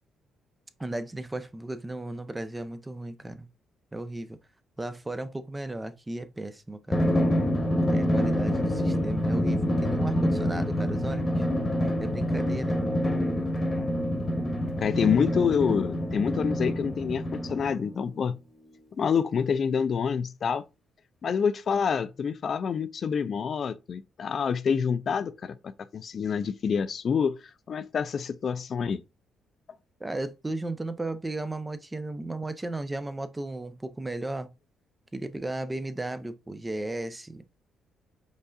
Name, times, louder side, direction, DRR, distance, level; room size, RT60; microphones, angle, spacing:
voice 1, 0.8-3.5 3.9-4.4 4.8-7.1 7.9-11.5 12.0-12.8 30.0-34.5 35.1-37.4, right 2 dB, 15° right, 0.6 m, -35 dB
Drum, 6.9-18.0, equal, 25° left, 1.1 m, -26 dB
voice 2, 14.8-18.4 19.0-20.6 21.2-27.4 27.7-29.0, left 6 dB, 50° left, 0.4 m, -27 dB
5.3 x 3.9 x 2.4 m
cardioid pair, 90°, 0 cm